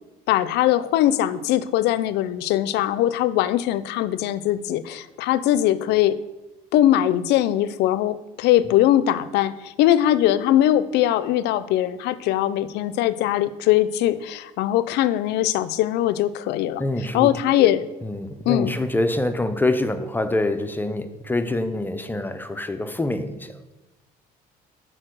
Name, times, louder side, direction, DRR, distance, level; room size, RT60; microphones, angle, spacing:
voice 1, 0.3-6.2 6.7-16.8 17.1-17.8 18.5-18.7, left 12 dB, 80° left, 16 dB, 0.4 m, -21 dB
voice 2, 16.8-17.3 17.6-17.7 18.0-23.6, left 2 dB, 10° left, 9 dB, 0.5 m, -25 dB
6.5 x 4.5 x 6.2 m, 1.1 s
cardioid pair, 110°, 17 cm